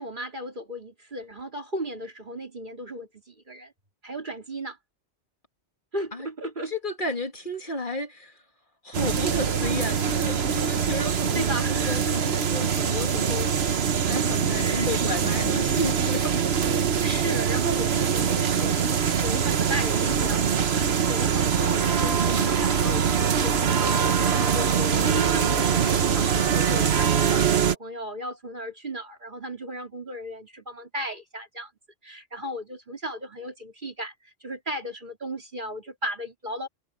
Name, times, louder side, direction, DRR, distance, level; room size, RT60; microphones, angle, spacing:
voice 1, 0.0-3.7 4.0-4.8 5.9-6.7 11.3-12.2 14.6-14.9 17.0-31.7 32.0-36.7, right 1 dB, 45° right, 3.1 m, -35 dB
voice 2, 6.7-8.4 8.8-11.4 11.7-13.5 14.0-16.4, left 2 dB, 50° left, 3.0 m, -32 dB
sound 1, 8.9-27.7, right 7 dB, 70° right, 1.3 m, -23 dB
omnidirectional pair, 1.1 m